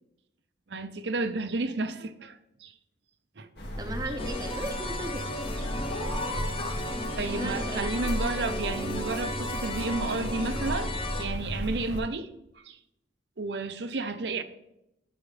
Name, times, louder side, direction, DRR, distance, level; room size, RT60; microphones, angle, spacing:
voice 1, 0.7-2.7 3.4-3.5 7.2-10.9 11.2-12.3 12.6-12.8 13.4-14.4, right 3 dB, 80° right, 0.7 m, -32 dB
sound 1, 3.6-12.0, equal, 70° left, 1.9 m, -34 dB
voice 2, 3.8-5.3 7.3-8.1, right 1 dB, 20° right, 0.7 m, -36 dB
sound 2, 4.2-11.2, left 1 dB, 30° left, 0.8 m, -35 dB
13.0 x 6.2 x 3.3 m
head